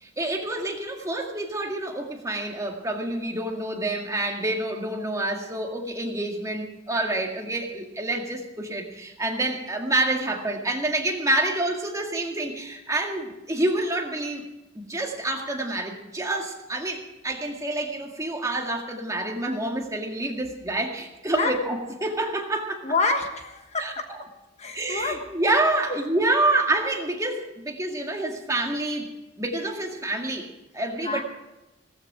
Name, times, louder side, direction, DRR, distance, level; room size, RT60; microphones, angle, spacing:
voice 1, 0.0-14.4 14.7-22.8 23.8-24.2 24.7-29.1 29.4-31.2, right 2 dB, 15° right, 1 dB, 2.0 m, -27 dB
voice 2, 22.8-24.0 24.6-25.2 31.0-31.2, left 3 dB, 35° left, 5 dB, 1.3 m, -27 dB
17.5 x 14.5 x 4.9 m, 0.98 s
head